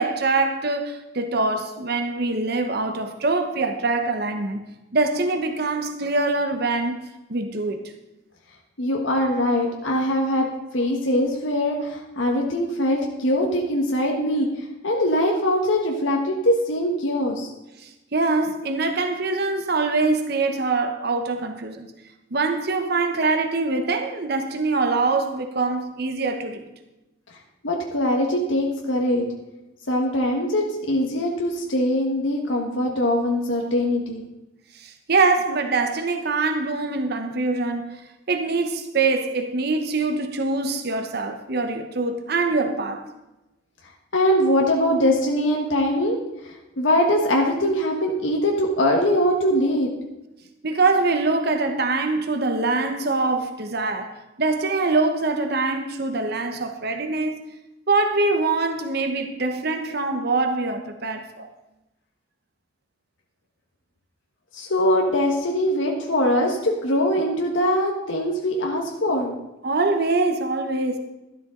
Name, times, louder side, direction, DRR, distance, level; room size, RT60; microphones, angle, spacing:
voice 1, 0.0-4.6 4.9-7.9 17.8-21.9 22.3-26.7 28.3-28.4 34.7-38.0 38.3-43.0 50.6-57.4 57.9-61.5 69.6-71.0, right 3 dB, 55° right, 1.0 m, -24 dB
voice 2, 8.8-10.5 10.7-17.5 27.6-29.2 29.9-34.2 44.1-49.9 64.5-69.3, left 1 dB, 75° left, 1.4 m, -22 dB
13.0 x 11.5 x 3.8 m
head